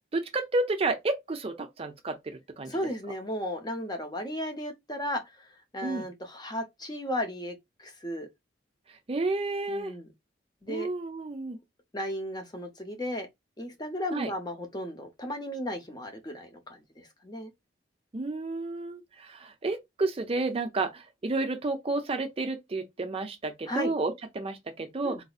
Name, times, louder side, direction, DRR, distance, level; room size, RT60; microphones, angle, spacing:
voice 1, 0.1-2.7 5.8-6.1 8.9-9.9 10.7-11.6 14.1-14.3 18.1-25.2, right 3 dB, 30° right, 0.5 m, -31 dB
voice 2, 2.7-5.5 5.7-7.5 7.8-8.3 9.7-10.1 10.6-10.9 11.9-13.3 13.6-17.5 23.7-23.9 25.0-25.2, equal, 20° left, 0.7 m, -35 dB
3.9 x 2.7 x 2.3 m
head